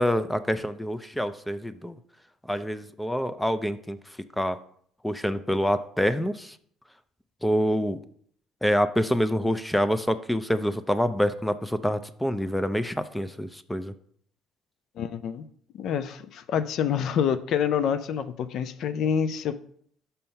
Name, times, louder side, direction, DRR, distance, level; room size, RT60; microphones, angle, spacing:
voice 1, 0.0-2.0 2.5-4.0 4.4-4.6 5.0-6.6 7.4-8.0 8.6-13.9, equal, 5° left, 13 dB, 0.5 m, -26 dB
voice 2, 15.0-15.5 15.7-19.5, left 8 dB, 65° left, 11 dB, 0.4 m, -27 dB
5.6 x 5.5 x 5.2 m, 0.62 s
supercardioid pair, 70°, 0 cm